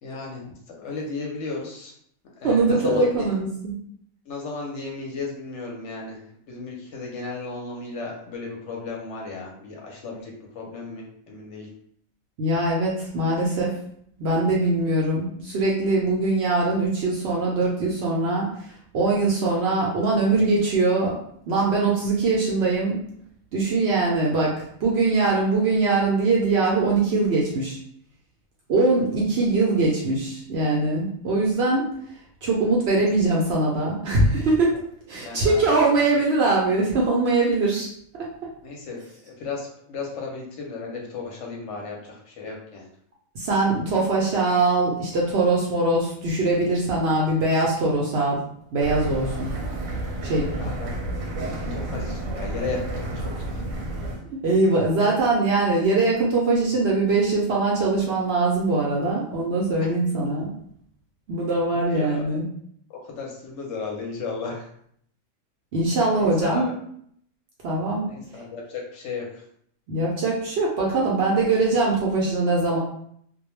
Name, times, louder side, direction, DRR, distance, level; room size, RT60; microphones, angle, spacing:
voice 1, 0.0-1.9 2.4-3.0 4.3-6.2 6.5-11.7 33.0-33.1 35.2-36.2 38.6-42.9 50.4-50.9 51.7-53.6 61.7-62.2 63.0-64.7 66.2-66.7 68.1-69.4, left 4 dB, 65° left, -1 dB, 0.8 m, -35 dB
voice 2, 2.4-3.8 12.4-13.7 14.2-21.1 21.5-23.0 23.5-24.5 24.8-27.8 28.7-31.9 32.4-34.7 35.1-37.9 43.3-48.4 48.7-49.5 50.2-50.5 54.2-60.5 61.3-62.5 65.7-66.7 67.6-68.0 69.9-72.8, right 3 dB, 65° right, -3 dB, 0.7 m, -22 dB
sound 1, 48.8-54.2, right 1 dB, 80° right, 1.0 m, -30 dB
2.2 x 2.1 x 3.0 m, 0.67 s
omnidirectional pair, 1.4 m